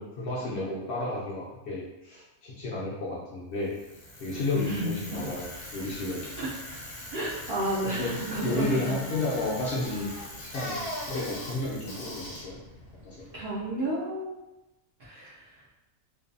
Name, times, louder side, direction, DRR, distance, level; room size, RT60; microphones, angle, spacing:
voice 1, 0.0-3.7 4.2-6.2 7.8-10.1 10.4-10.8 11.1-12.6 13.0-13.3, left 2 dB, 60° left, -6 dB, 0.8 m, -32 dB
Bicycle, 3.6-13.7, left 1 dB, 85° left, 0.3 m, -41 dB
voice 2, 4.5-5.3 6.4-6.5 7.1-8.8 13.3-14.4 15.0-15.4, right 1 dB, 60° right, -8 dB, 0.6 m, -31 dB
2.6 x 2.3 x 2.5 m, 1.0 s
omnidirectional pair, 1.5 m